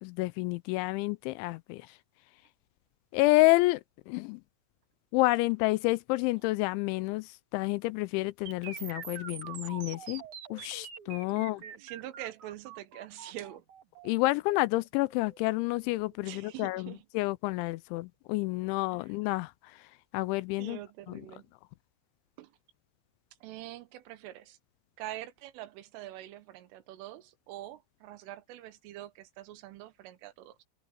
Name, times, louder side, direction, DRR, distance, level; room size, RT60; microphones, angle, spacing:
voice 1, 0.0-2.0 3.1-4.4 5.1-10.2 10.5-11.6 14.0-19.9 20.1-20.8 21.1-21.2, left 21 dB, 85° left, 2.7 m, -29 dB
sound 1, 8.5-16.4, right 7 dB, 50° right, 2.8 m, -45 dB
voice 2, 11.3-13.7 16.2-17.1 18.9-19.1 20.6-21.4 22.4-22.5 23.4-24.6 25.0-30.6, right 14 dB, 80° right, 3.7 m, -45 dB
omnidirectional pair, 5.7 m